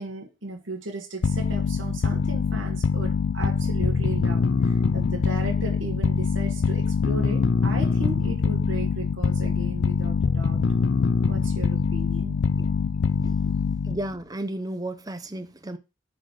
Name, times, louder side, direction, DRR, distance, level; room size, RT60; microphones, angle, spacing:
voice 1, 0.0-10.6 11.3-12.7 13.2-13.3, right 2 dB, 70° right, 1.7 m, -36 dB
sound 1, 1.2-14.1, left 5 dB, 60° left, 0.4 m, -24 dB
voice 2, 13.8-15.8, right 1 dB, 20° right, 0.7 m, -33 dB
8.9 x 4.3 x 4.7 m
head